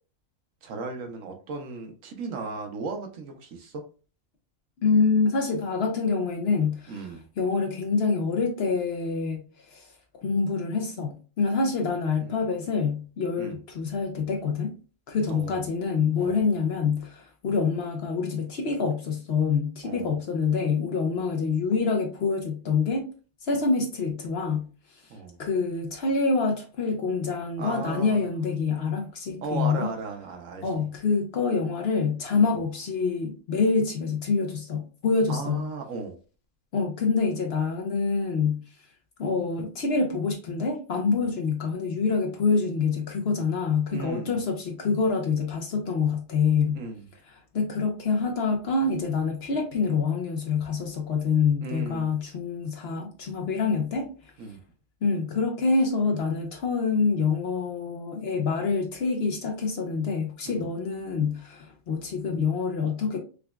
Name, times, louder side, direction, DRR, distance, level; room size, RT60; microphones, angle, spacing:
voice 1, 0.6-3.8 6.9-7.3 12.2-12.4 13.4-13.6 15.3-15.6 16.2-16.5 19.8-20.2 25.1-25.4 27.6-28.2 29.4-30.7 32.5-32.6 35.3-36.2 43.9-44.4 46.7-47.0 51.6-52.2 54.4-54.6 60.5-60.6, right 4 dB, 75° right, 1.1 m, -36 dB
voice 2, 4.8-7.1 7.4-9.9 10.2-14.7 15.1-23.0 23.4-24.7 25.4-29.9 30.6-35.7 36.7-38.6 39.2-46.8 47.5-54.1 55.0-63.2, left 4 dB, 60° left, 0.8 m, -26 dB
4.9 x 2.3 x 2.2 m
omnidirectional pair, 1.4 m